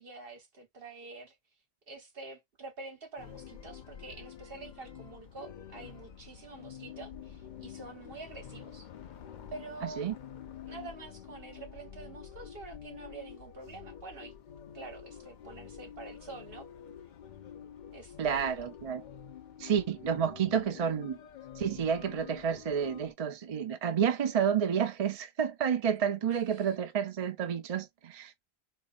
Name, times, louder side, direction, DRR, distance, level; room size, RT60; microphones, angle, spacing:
voice 1, 0.0-1.3 1.9-8.9 9.5-10.1 10.6-14.3 14.7-16.7 17.9-18.5 25.6-25.9 26.3-26.7, right 3 dB, 65° right, 1.5 m, -47 dB
sound 1, 3.2-23.1, left 9 dB, 55° left, 0.6 m, -48 dB
voice 2, 9.8-10.1 18.2-19.0 19.6-21.2 21.6-28.3, right 7 dB, 45° right, 0.6 m, -30 dB
3.9 x 2.8 x 2.4 m
omnidirectional pair, 1.1 m